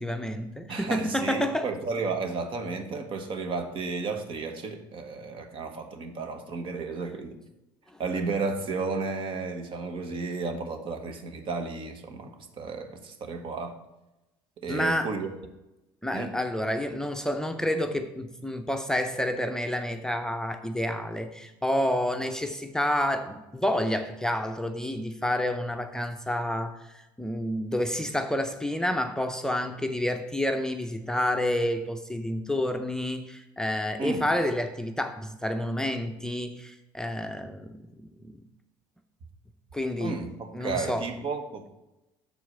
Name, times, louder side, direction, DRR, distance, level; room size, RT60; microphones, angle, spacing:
voice 1, 0.0-1.7 14.7-15.1 16.0-37.8 38.2-38.4 39.7-40.2 40.5-41.1, left 1 dB, 5° left, 6 dB, 0.6 m, -29 dB
voice 2, 0.7-7.4 8.0-13.8 14.6-15.3 16.1-16.3 34.0-34.2 40.0-41.7, right 4 dB, 50° right, 6 dB, 1.2 m, -33 dB
6.8 x 4.6 x 6.5 m, 0.97 s
hypercardioid pair, 70°, 11 cm